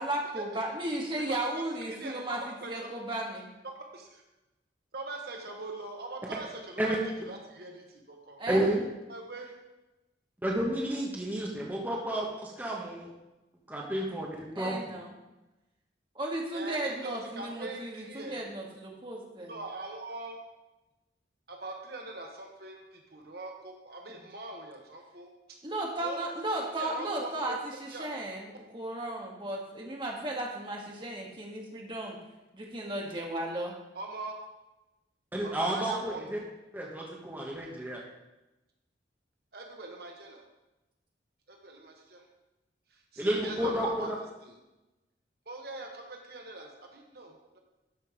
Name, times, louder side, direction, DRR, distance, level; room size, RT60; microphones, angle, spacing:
voice 1, 0.0-3.5 8.4-8.7 14.6-15.2 16.2-19.5 24.1-24.2 25.6-32.2 32.7-33.8, right 1 dB, 25° right, -1 dB, 1.7 m, -35 dB
voice 2, 1.1-1.6 2.0-2.1 2.6-2.7 3.7-4.2 4.9-7.0 7.3-8.4 9.1-9.5 16.5-18.4 19.5-20.4 21.5-25.3 26.0-26.3 26.7-27.5 27.9-28.1 33.9-34.4 35.4-36.2 39.5-40.4 41.5-42.2 43.1-44.1 44.4-44.5 45.5-47.6, right 2 dB, 55° right, 2 dB, 1.3 m, -42 dB
voice 3, 8.5-8.9 10.4-13.1 13.7-14.8 35.3-36.4 36.7-38.0 43.2-44.1, right 1 dB, 10° right, -3 dB, 1.2 m, -31 dB
12.5 x 5.2 x 5.1 m, 1.0 s
head